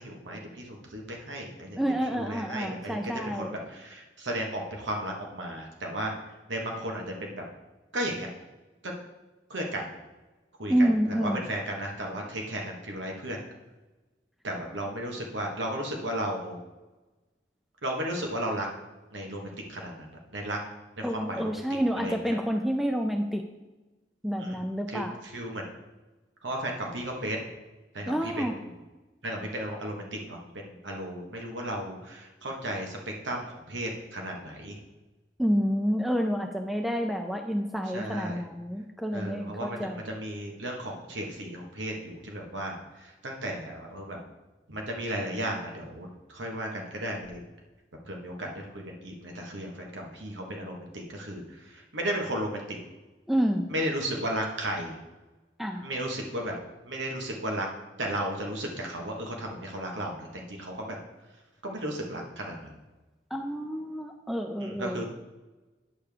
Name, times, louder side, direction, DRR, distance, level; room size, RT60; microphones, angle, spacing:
voice 1, 0.0-3.0 3.2-6.1 6.5-7.4 7.9-8.3 9.5-9.9 10.6-13.4 14.4-16.6 17.8-18.7 19.1-20.6 21.0-21.6 22.0-22.3 24.4-25.6 26.4-27.5 27.9-28.5 29.2-34.7 37.9-38.4 39.1-44.2 44.7-47.4 48.0-52.8 53.7-55.0 55.8-56.5 56.8-57.7 58.0-61.0 61.6-62.7 64.6-65.0, right 1 dB, 90° right, 1 dB, 1.4 m, -34 dB
voice 2, 1.8-3.5 10.7-11.4 21.0-23.4 24.2-25.2 28.1-28.5 35.4-40.0 53.3-53.7 55.6-55.9 63.3-65.0, equal, ahead, 3 dB, 0.4 m, -28 dB
9.8 x 3.5 x 6.7 m, 1.1 s
head